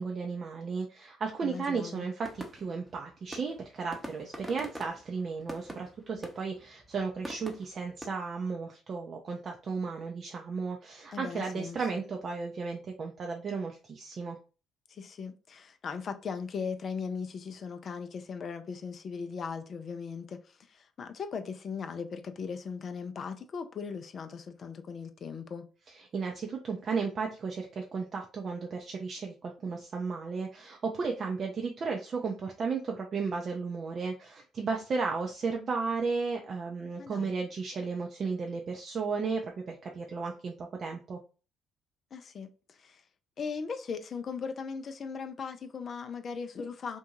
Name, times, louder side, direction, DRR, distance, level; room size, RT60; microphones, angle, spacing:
voice 1, 0.0-14.4 26.1-41.2, right 4 dB, 50° right, 0.4 m, -34 dB
voice 2, 1.4-2.0 11.1-11.8 14.9-25.7 37.0-37.3 42.1-43.0 43.4-47.0, left 5 dB, 50° left, 0.4 m, -38 dB
sound 1, 2.3-8.1, right 1 dB, 10° right, 0.7 m, -45 dB
2.6 x 2.2 x 2.9 m
hypercardioid pair, 50°, 0 cm